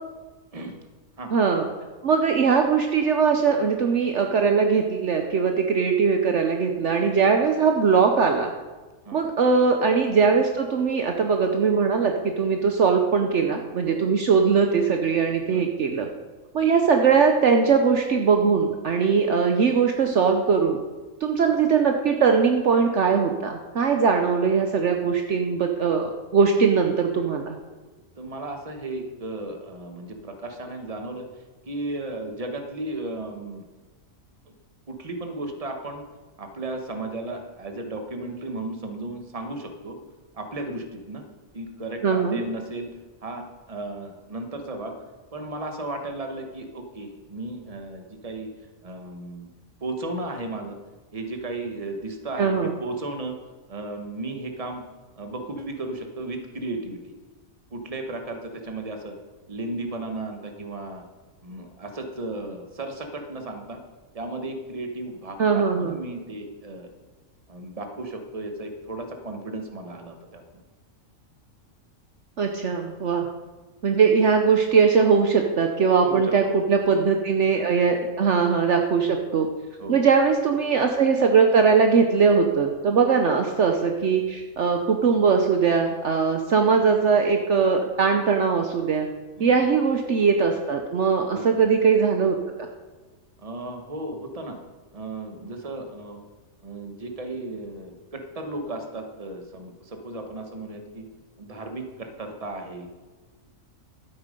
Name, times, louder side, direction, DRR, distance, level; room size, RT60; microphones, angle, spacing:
voice 1, 1.3-1.7 2.0-8.5 9.1-16.1 16.5-20.8 21.2-27.6 42.0-42.4 52.4-52.7 65.4-66.0 72.4-73.3 73.8-79.5 79.9-89.1 89.4-92.7, right 5 dB, 60° right, 4 dB, 1.1 m, -21 dB
voice 2, 28.2-31.3 31.6-33.6 34.5-34.6 34.9-36.0 36.4-40.0 40.3-41.2 41.5-42.9 43.2-44.9 45.3-48.5 48.8-49.5 49.8-50.8 51.1-53.4 53.7-54.8 55.2-57.1 57.7-59.2 59.5-61.0 61.4-63.8 64.1-66.9 67.5-70.4 76.0-76.3 77.5-77.7 79.8-80.1 89.4-89.6 91.3-91.6 93.4-94.6 94.9-96.2 96.6-101.0 101.4-102.9, right 2 dB, 25° right, 4 dB, 1.3 m, -35 dB
12.5 x 8.8 x 5.3 m, 1.3 s
omnidirectional pair, 1.5 m